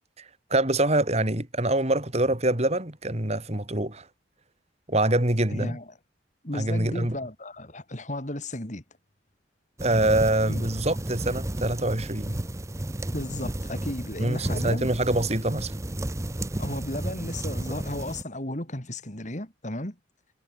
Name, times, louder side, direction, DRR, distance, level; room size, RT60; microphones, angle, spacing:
voice 1, 0.2-4.1 4.9-5.8 6.5-7.2 9.8-12.4 14.2-15.7, right 1 dB, 35° right, 2.8 m, -25 dB
voice 2, 5.5-5.9 6.4-8.8 10.5-10.6 13.1-14.9 16.6-20.0, left 1 dB, 40° left, 3.7 m, -34 dB
sound 1, 9.8-18.2, right 1 dB, 15° right, 0.6 m, -32 dB
head